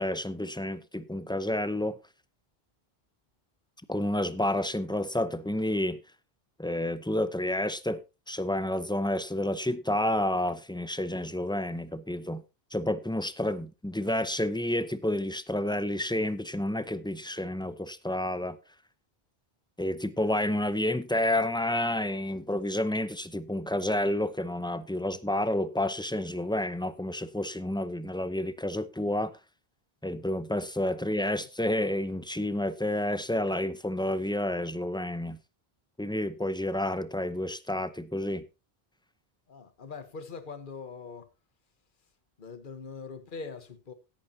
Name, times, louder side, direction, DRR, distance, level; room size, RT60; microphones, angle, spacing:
voice 1, 0.0-2.0 3.9-6.0 6.6-8.0 8.3-12.4 12.7-18.6 19.8-29.3 30.0-35.4 36.0-38.4, left 1 dB, 5° left, 0.6 m, -30 dB
voice 2, 39.5-41.3 42.4-43.9, left 4 dB, 55° left, 1.4 m, -42 dB
16.5 x 9.0 x 2.8 m
omnidirectional pair, 1.0 m